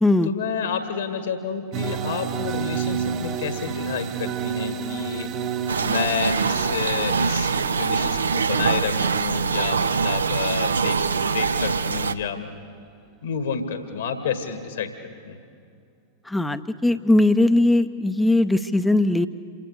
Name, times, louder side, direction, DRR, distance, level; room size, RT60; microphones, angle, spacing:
voice 1, 0.2-5.3 5.8-12.5 13.2-15.4, left 6 dB, 65° left, 8 dB, 1.9 m, -30 dB
sound 1, 1.7-10.5, right 7 dB, 35° right, 1.2 m, -31 dB
sound 2, 5.7-12.1, right 5 dB, 70° right, 0.6 m, -23 dB
voice 2, 16.3-19.3, left 2 dB, 5° left, 11 dB, 0.7 m, -19 dB
27.5 x 16.5 x 8.2 m, 2.3 s
figure-of-eight pair, 90°, 0 cm